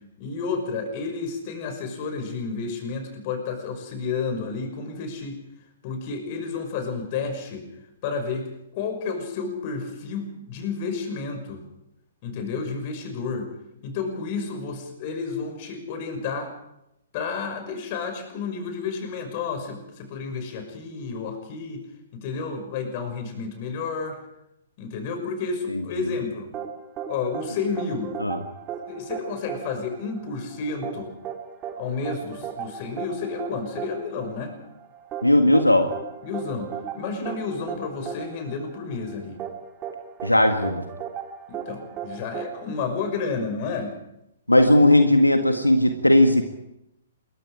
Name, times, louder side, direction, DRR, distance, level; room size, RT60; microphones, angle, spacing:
voice 1, 0.2-5.4 5.8-7.7 8.0-11.6 12.2-13.5 13.8-16.5 17.1-21.8 22.2-24.2 24.8-26.5 27.1-28.1 28.9-31.1 31.8-34.5 36.2-39.4 41.5-43.9 44.6-44.7, left 4 dB, 35° left, 6 dB, 6.0 m, -31 dB
sound 1, 26.5-43.4, right 8 dB, 20° right, 3.2 m, -36 dB
voice 2, 35.2-35.9 40.2-40.8 44.5-46.4, left 1 dB, 85° left, 6 dB, 1.8 m, -17 dB
27.5 x 23.0 x 5.0 m, 0.85 s
figure-of-eight pair, 120°, 0 cm